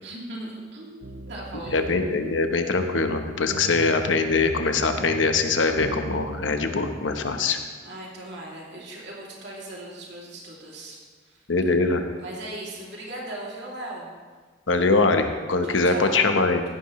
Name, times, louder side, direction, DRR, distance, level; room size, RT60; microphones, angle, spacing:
voice 1, 0.0-1.8 7.8-11.0 11.2-11.4 12.2-14.1 15.6-16.3, right 1 dB, 60° right, -3 dB, 2.8 m, -38 dB
sound 1, 1.0-6.4, right 3 dB, 90° right, 0.6 m, -38 dB
voice 2, 1.7-7.6 11.5-12.0 14.7-16.6, left 3 dB, 85° left, 6 dB, 1.0 m, -22 dB
16.0 x 10.5 x 3.2 m, 1.4 s
head